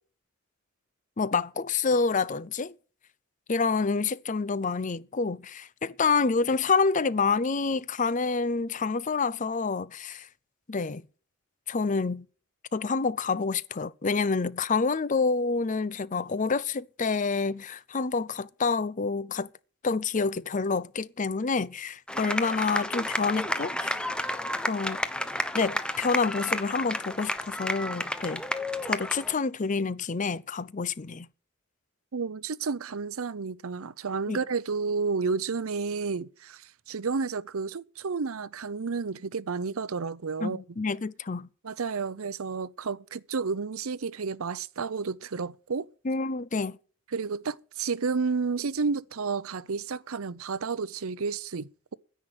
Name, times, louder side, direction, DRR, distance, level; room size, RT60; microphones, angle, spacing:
voice 1, 1.2-2.7 3.5-10.3 10.7-11.0 11.7-12.3 12.7-19.5 19.8-24.0 24.7-25.0 25.5-28.4 28.9-31.3 34.3-34.4 40.4-41.5 46.0-46.8, left 4 dB, 35° left, 0.6 m, -28 dB
sound 1, 22.1-29.3, left 1 dB, 5° left, 0.9 m, -31 dB
voice 2, 32.1-40.6 41.6-45.9 47.1-51.9, right 4 dB, 80° right, 0.7 m, -31 dB
10.5 x 9.1 x 7.8 m
head